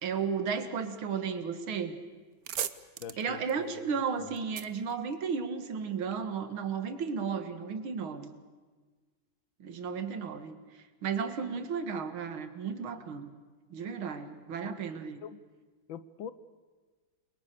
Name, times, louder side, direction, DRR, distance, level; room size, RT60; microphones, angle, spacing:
voice 1, 0.0-2.0 3.2-8.3 9.6-10.6 11.0-13.3 13.7-15.2, right 6 dB, 85° right, 9 dB, 2.5 m, -34 dB
sound 1, 1.7-1.9 2.2-5.8, right 10 dB, 55° right, 1.1 m, -40 dB
voice 2, 3.0-3.9 4.2-4.4 14.6-14.8 15.2-15.4 15.9-16.3, left 8 dB, 75° left, 15 dB, 1.7 m, -44 dB
29.0 x 22.5 x 6.8 m, 1.4 s
omnidirectional pair, 2.2 m